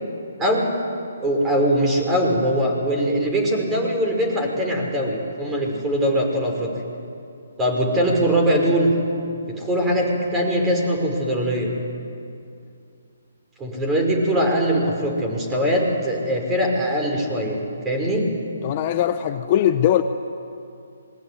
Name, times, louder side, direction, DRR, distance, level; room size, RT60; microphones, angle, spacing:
voice 1, 0.4-0.7 1.2-6.7 7.6-8.9 9.6-11.7 13.6-17.6 17.8-18.3, equal, 15° right, 1 dB, 5.7 m, -21 dB
voice 2, 18.6-20.0, left 11 dB, 35° left, 8 dB, 1.0 m, -20 dB
27.0 x 21.5 x 9.8 m, 2.6 s
hypercardioid pair, 145°, 0 cm